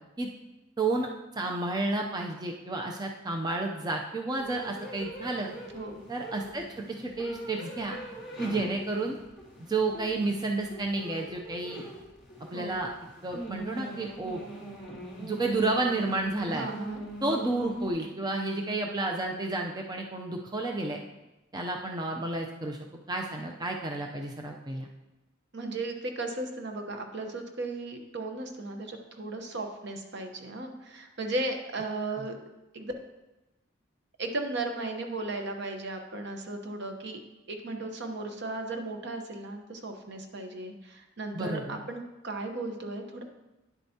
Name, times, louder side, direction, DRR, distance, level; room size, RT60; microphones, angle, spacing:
voice 1, 0.8-1.1 1.4-5.5 6.1-8.0 8.4-9.2 9.7-11.8 12.5-12.9 13.2-14.4 15.2-16.7 17.2-21.0 21.5-22.8 23.1-24.9 32.2-32.3 41.3-41.8, right 2 dB, 20° right, 1 dB, 0.6 m, -31 dB
sound 1, 4.4-17.9, right 1 dB, 5° right, 3.3 m, -42 dB
voice 2, 16.5-17.0 25.5-32.4 32.7-32.9 34.2-37.2 37.5-43.2, right 2 dB, 60° right, 4 dB, 1.0 m, -36 dB
9.9 x 7.8 x 2.8 m, 1.0 s
head